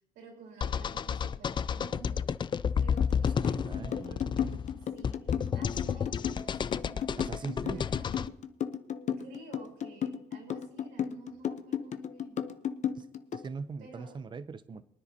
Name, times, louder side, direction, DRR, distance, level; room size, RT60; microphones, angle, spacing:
voice 1, 0.1-2.3 2.7-5.1 5.5-8.2 9.2-12.4 13.8-14.2, right 3 dB, 85° right, 0 dB, 4.3 m, -51 dB
sound 1, 0.6-8.3, left 7 dB, 30° left, 0.4 m, -31 dB
sound 2, 3.0-13.5, left 8 dB, 45° left, 0.8 m, -34 dB
voice 2, 3.2-4.2 7.2-7.8 13.0-14.8, right 4 dB, 25° right, 14 dB, 0.6 m, -41 dB
23.0 x 10.0 x 2.8 m, 0.75 s
cardioid pair, 110°, 17 cm